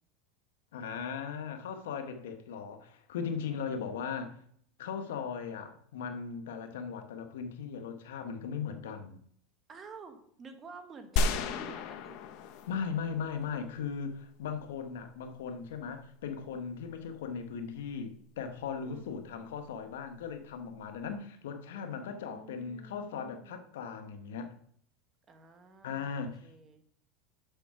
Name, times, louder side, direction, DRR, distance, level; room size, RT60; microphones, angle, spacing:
voice 1, 0.7-4.4 4.8-9.2 12.7-24.6 25.8-26.4, left 6 dB, 85° left, 1.1 m, -38 dB
voice 2, 3.5-4.2 9.7-12.2 18.8-19.4 21.7-23.8 25.3-26.8, right 4 dB, 25° right, 1.3 m, -51 dB
sound 1, 11.2-13.5, left 3 dB, 55° left, 0.8 m, -33 dB
6.9 x 5.8 x 5.8 m
supercardioid pair, 130°, 0 cm